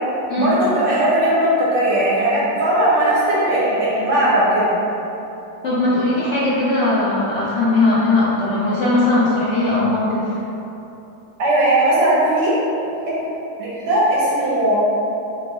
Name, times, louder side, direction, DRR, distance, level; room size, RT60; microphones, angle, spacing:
voice 1, 0.4-4.7 11.4-12.5 13.6-14.7, right 1 dB, 80° right, -8 dB, 1.7 m, -18 dB
voice 2, 5.6-10.4, left 2 dB, 65° left, -8 dB, 0.7 m, -19 dB
5.0 x 2.1 x 4.4 m, 3.0 s
omnidirectional pair, 2.0 m